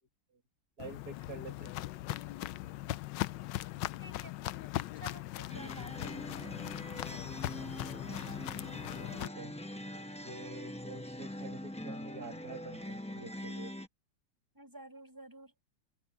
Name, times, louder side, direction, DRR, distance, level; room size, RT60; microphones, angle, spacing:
Walk footsteps, 0.8-9.3, left 16 dB, 80° left, 1.2 m, -39 dB
voice 1, 0.8-1.8 8.9-9.5 10.2-13.7, right 2 dB, 55° right, 2.9 m, -47 dB
voice 2, 4.0-4.3 4.9-6.4 14.5-15.5, right 1 dB, 10° right, 6.7 m, -51 dB
sound 1, 5.5-13.9, left 1 dB, 10° left, 0.4 m, -43 dB
open air
omnidirectional pair, 2.0 m